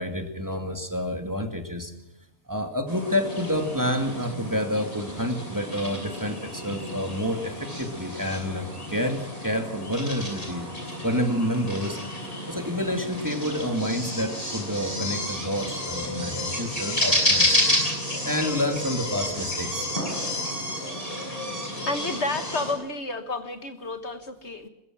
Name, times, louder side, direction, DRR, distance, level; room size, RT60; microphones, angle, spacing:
voice 1, 0.0-1.9 2.5-10.7 11.0-17.6 18.2-19.9, equal, 15° right, 5 dB, 2.3 m, -29 dB
sound 1, 2.9-22.7, left 1 dB, 25° left, 6.4 m, -30 dB
voice 2, 21.9-24.7, left 3 dB, 55° left, 8 dB, 1.7 m, -31 dB
23.0 x 21.5 x 6.1 m, 0.91 s
omnidirectional pair, 1.4 m